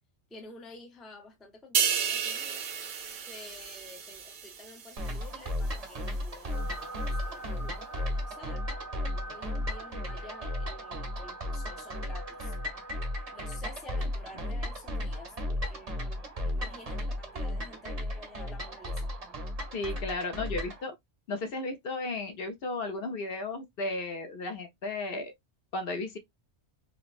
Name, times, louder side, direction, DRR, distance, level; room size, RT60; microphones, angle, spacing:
voice 1, 0.3-2.7 3.3-12.6 13.3-19.4, left 2 dB, ahead, 0.5 m, -50 dB
sound 1, 1.7-5.3 5.7-5.9, right 7 dB, 70° right, 0.9 m, -32 dB
sound 2, 5.0-20.8, left 1 dB, 35° right, 0.8 m, -35 dB
sound 3, 6.5-13.6, right 2 dB, 75° left, 1.5 m, -45 dB
voice 2, 19.7-20.9 21.3-25.3 25.7-26.2, left 2 dB, 60° left, 0.9 m, -34 dB
4.4 x 2.0 x 2.4 m
omnidirectional pair, 1.2 m